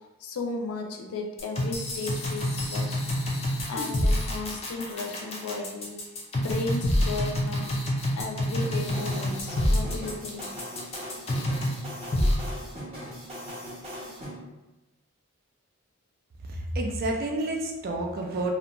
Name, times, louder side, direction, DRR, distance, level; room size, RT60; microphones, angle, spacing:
voice 1, 0.0-3.0 3.4-6.0 6.4-7.8 8.2-10.5, left 3 dB, 85° left, 2 dB, 0.4 m, -35 dB
sound 1, 1.4-11.8 12.1-12.3, left 1 dB, 25° left, 0.4 m, -27 dB
sound 2, 8.6-14.3, equal, 25° right, 0.7 m, -39 dB
voice 2, 16.5-18.5, right 2 dB, 40° right, 1 dB, 0.3 m, -29 dB
2.5 x 2.1 x 2.9 m, 1.1 s
head